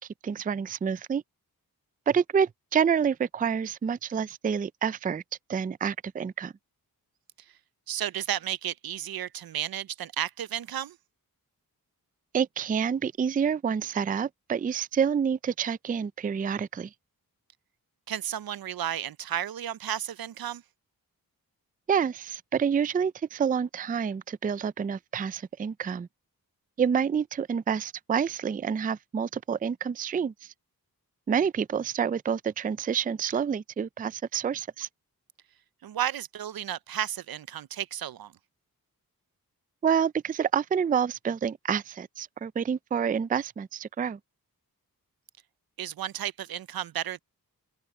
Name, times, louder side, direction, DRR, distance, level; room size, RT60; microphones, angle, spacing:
voice 1, 0.2-1.2 2.1-5.2 5.5-6.5 12.3-16.9 21.9-26.1 26.8-30.5 31.3-34.9 39.8-44.2, right 7 dB, 25° right, 0.3 m, -28 dB
voice 2, 7.9-11.0 18.1-20.6 35.8-38.3 45.8-47.2, right 11 dB, 75° right, 0.6 m, -33 dB
open air
wide cardioid pair, 95°, 36 cm